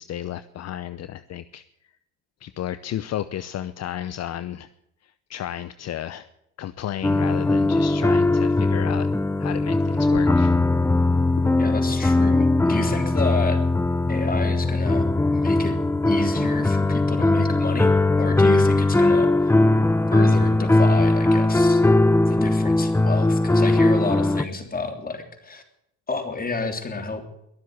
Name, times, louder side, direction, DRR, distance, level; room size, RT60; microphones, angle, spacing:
voice 1, 0.0-1.6 2.4-4.7 5.3-6.3 6.6-9.1 9.4-10.6 11.4-11.5, left 11 dB, 60° left, 14 dB, 0.8 m, -32 dB
sound 1, 7.0-24.4, left 2 dB, 10° left, 0.6 m, -19 dB
voice 2, 11.6-13.6 14.1-15.8 16.1-19.5 20.1-21.8 22.3-25.6 26.1-27.2, left 3 dB, 30° left, 6 dB, 3.2 m, -30 dB
22.5 x 7.7 x 8.2 m, 0.79 s
cardioid pair, 95°, 30 cm